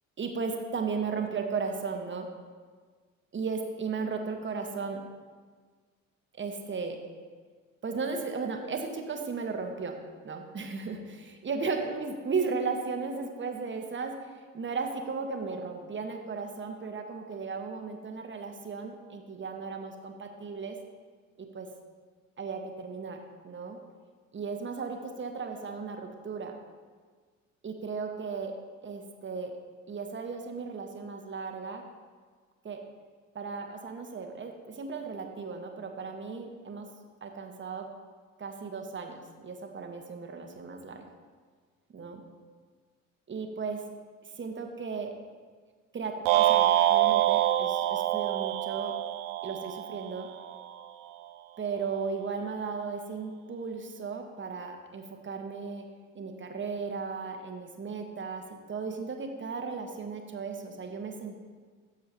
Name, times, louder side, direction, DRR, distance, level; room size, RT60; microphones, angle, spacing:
voice 1, 0.2-2.3 3.3-5.0 6.3-7.0 7.8-10.0 10.2-14.1 14.5-20.8 21.4-21.7 22.4-23.2 23.4-23.8 24.3-26.5 27.6-28.5 28.8-29.5 29.9-31.8 32.6-32.8 33.3-36.9 37.2-37.8 38.4-41.0 41.9-42.2 43.3-43.8 44.4-45.1 45.9-49.0 49.4-50.3 51.6-55.9 56.1-58.4 58.7-61.4, right 5 dB, 30° right, 4 dB, 1.4 m, -35 dB
sound 1, 46.3-50.6, right 13 dB, 55° right, 0.7 m, -25 dB
15.0 x 7.4 x 2.9 m, 1.5 s
figure-of-eight pair, 55°, 40 cm